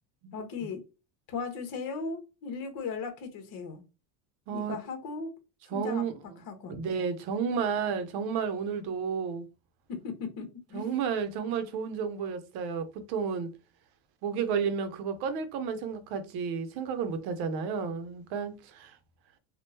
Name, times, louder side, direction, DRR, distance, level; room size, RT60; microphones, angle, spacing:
voice 1, 0.3-0.8 1.3-3.8 4.5-5.3 5.7-6.0 6.5-6.8 9.9-10.8, left 4 dB, 50° left, 1.2 m, -37 dB
voice 2, 4.5-4.8 5.7-6.1 6.7-9.4 10.7-13.5 14.2-19.0, right 6 dB, 60° right, 0.8 m, -32 dB
3.6 x 2.3 x 2.7 m
cardioid pair, 140°, 44 cm